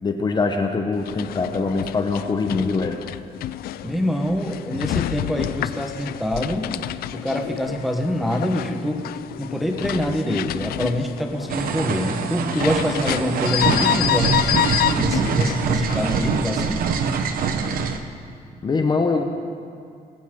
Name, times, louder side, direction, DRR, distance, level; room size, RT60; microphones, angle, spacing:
voice 1, 0.0-3.0 18.6-19.2, left 4 dB, 25° left, 4 dB, 0.9 m, -23 dB
sound 1, 1.0-16.3, left 13 dB, 75° left, 0.4 m, -28 dB
voice 2, 3.8-6.7 7.1-9.0 9.4-14.4 14.9-16.8, equal, ahead, 2 dB, 1.1 m, -25 dB
sound 2, 11.5-18.0, right 5 dB, 65° right, 1.0 m, -24 dB
19.5 x 16.5 x 3.7 m, 2.4 s
cardioid pair, 140°, 16 cm